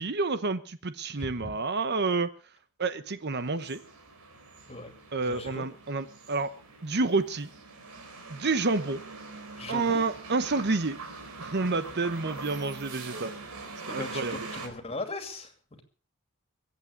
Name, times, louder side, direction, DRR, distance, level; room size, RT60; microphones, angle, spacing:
voice 1, 0.0-2.3 2.8-3.8 5.1-6.5 6.8-7.5 8.3-9.0 9.7-11.0 11.4-13.3 13.9-14.4, right 3 dB, 50° right, 12 dB, 0.9 m, -29 dB
voice 2, 1.2-1.5 4.7-4.9 5.2-5.7 9.6-10.0 13.8-15.8, left 2 dB, 25° left, 7 dB, 2.5 m, -39 dB
sound 1, 3.2-14.7, right 3 dB, 90° right, 4.0 m, -43 dB
22.5 x 8.6 x 6.4 m, 0.41 s
head